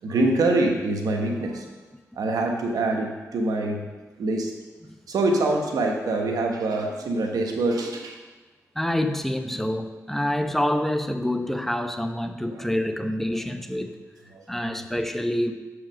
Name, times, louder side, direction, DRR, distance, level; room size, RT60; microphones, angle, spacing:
voice 1, 0.0-1.7 2.2-3.9 4.2-4.5 5.1-8.2 12.5-12.6 13.3-13.5 14.3-14.7, right 2 dB, 85° right, 2 dB, 1.1 m, -25 dB
voice 2, 8.7-14.0 14.5-15.5, left 1 dB, 5° left, 7 dB, 0.7 m, -27 dB
7.3 x 4.9 x 6.2 m, 1.3 s
cardioid pair, 50°, 6 cm